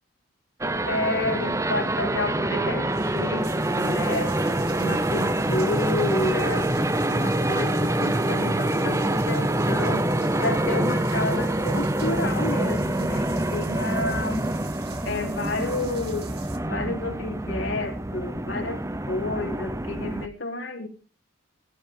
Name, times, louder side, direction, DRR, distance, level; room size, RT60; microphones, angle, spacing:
sound 1, 0.6-20.3, right 1 dB, 15° right, 0.8 m, -26 dB
voice 1, 0.8-4.3 4.8-6.7 7.1-10.1 10.4-14.5 15.0-16.3 16.6-20.9, left 2 dB, 70° left, 2 dB, 3.9 m, -30 dB
sound 2, 2.3-2.4 2.7-16.6, right 8 dB, 50° right, 2.8 m, -46 dB
19.0 x 12.5 x 3.9 m, 0.36 s
head